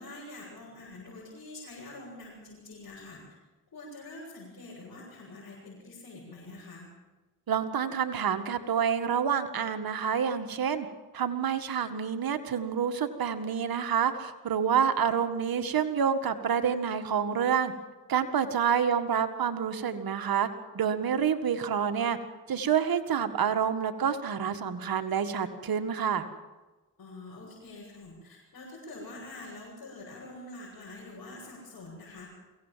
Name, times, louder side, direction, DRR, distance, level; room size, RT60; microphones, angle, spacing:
voice 1, 0.0-3.4 3.7-6.9 18.7-18.8 27.0-32.3, left 2 dB, 60° left, -6 dB, 7.8 m, -45 dB
voice 2, 7.5-10.9 11.1-17.7 18.1-20.5 20.7-22.2 22.5-26.3, right 7 dB, 70° right, 8 dB, 1.9 m, -28 dB
23.0 x 17.5 x 7.6 m, 1.2 s
cardioid pair, 55°, 37 cm